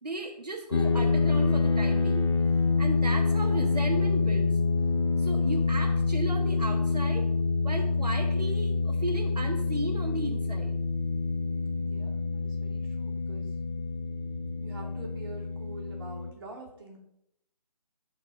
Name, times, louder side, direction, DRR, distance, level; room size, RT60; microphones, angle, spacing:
voice 1, 0.0-2.3 2.8-4.5 5.2-7.3 7.6-10.8 12.0-12.1, right 2 dB, 75° right, 1 dB, 1.5 m, -35 dB
sound 1, 0.7-16.3, left 3 dB, 45° left, 0.7 m, -27 dB
voice 2, 11.8-13.5 14.6-17.0, right 2 dB, 35° right, -2 dB, 2.7 m, -46 dB
12.5 x 4.7 x 5.1 m, 0.77 s
figure-of-eight pair, 150°, 21 cm